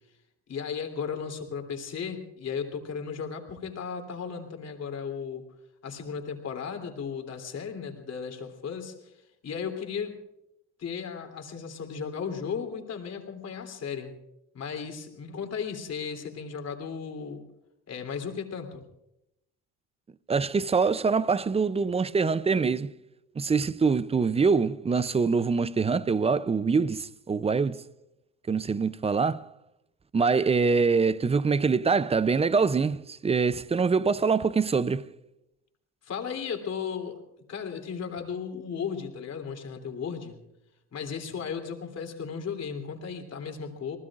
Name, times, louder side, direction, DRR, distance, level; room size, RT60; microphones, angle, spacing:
voice 1, 0.5-5.5 5.8-9.2 9.4-10.2 10.8-14.1 14.5-17.4 17.9-18.8 36.0-37.2 37.5-40.4 40.9-44.0, left 6 dB, 50° left, 3.2 m, -35 dB
voice 2, 20.3-22.9 23.4-27.8 28.5-29.5 30.1-35.1, right 5 dB, 20° right, 0.5 m, -24 dB
28.0 x 19.5 x 2.5 m
supercardioid pair, 90°, 33 cm